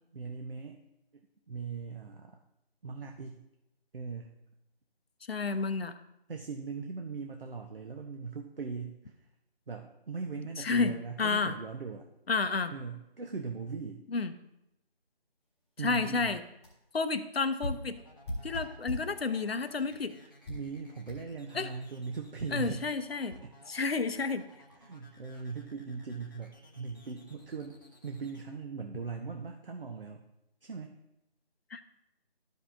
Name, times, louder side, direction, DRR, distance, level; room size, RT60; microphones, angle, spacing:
voice 1, 0.1-0.8 1.5-2.4 2.8-3.4 3.9-4.3 6.3-9.1 9.7-12.1 12.7-14.0 15.8-16.3 20.5-22.9 23.4-23.5 23.9-24.0 24.8-30.3 30.6-30.9, right 5 dB, 60° right, 3 dB, 0.8 m, -39 dB
voice 2, 5.3-5.9 10.6-11.6 12.3-12.7 14.1-14.3 15.8-16.4 16.9-18.0 18.4-20.1 21.5-21.7 22.5-23.4 23.7-24.4 31.7-31.9, left 4 dB, 75° left, 10 dB, 0.8 m, -31 dB
sound 1, 15.8-15.9 16.3-16.4 16.6-16.8 17.6-19.2 19.9-20.0 20.4-20.7 21.1-21.2, equal, 5° left, 1.5 m, -38 dB
sound 2, 18.0-28.4, equal, 20° left, 0.8 m, -58 dB
13.0 x 5.3 x 2.6 m, 0.87 s
figure-of-eight pair, 170°, 31 cm